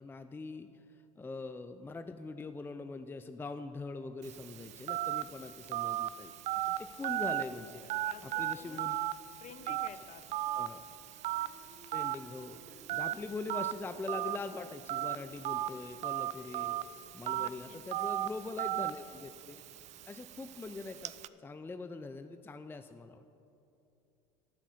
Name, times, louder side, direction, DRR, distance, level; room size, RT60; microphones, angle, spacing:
voice 1, 0.0-7.8 8.2-9.0 9.7-9.8 10.5-10.8 11.9-16.8 17.1-19.6 20.1-21.1 21.4-23.2, left 3 dB, 15° left, 9 dB, 0.5 m, -43 dB
Telephone, 4.2-21.3, right 13 dB, 45° right, 0.4 m, -37 dB
voice 2, 7.8-8.8 9.4-10.3 17.3-18.3, left 8 dB, 45° left, 11 dB, 0.9 m, -52 dB
sound 1, 10.3-16.6, right 1 dB, 25° right, 3.2 m, -58 dB
11.0 x 9.4 x 6.4 m, 2.7 s
hypercardioid pair, 85°, 17 cm